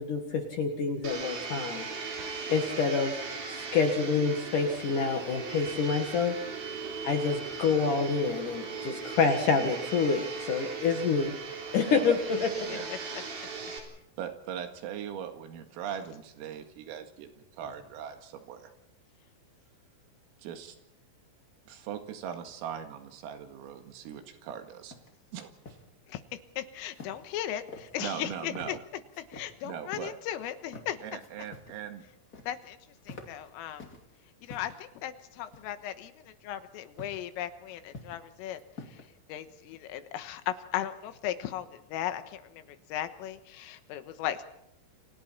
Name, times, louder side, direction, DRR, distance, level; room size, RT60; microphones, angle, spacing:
voice 1, 0.0-1.9 2.5-3.1 3.5-6.4 7.0-12.5, left 5 dB, 60° left, 5 dB, 2.3 m, -27 dB
Domestic sounds home sounds, 1.0-13.8, right 4 dB, 50° right, 5.1 m, -38 dB
voice 2, 14.2-18.7 20.4-20.8 21.7-25.0 25.3-25.5 28.0-28.8 29.6-30.1 31.0-32.1, right 9 dB, 85° right, 6 dB, 4.6 m, -40 dB
sound 1, 24.9-25.1 25.4-25.8 26.9-27.4 27.7-28.3 28.5-28.7 29.1-29.5 29.9-30.1 30.6-30.9 31.2-31.8 32.1-32.7 33.0-34.0 34.4-34.8 35.5-36.0 37.0-37.2 37.7-38.3 38.6-39.1, left 3 dB, 30° left, 1.9 m, -47 dB
voice 3, 26.1-28.8 29.3-31.0 32.5-32.8 33.1-33.8 34.4-38.6 38.9-39.0 39.3-44.4, left 11 dB, 85° left, 10 dB, 3.8 m, -37 dB
29.5 x 25.0 x 4.4 m, 0.79 s
omnidirectional pair, 5.9 m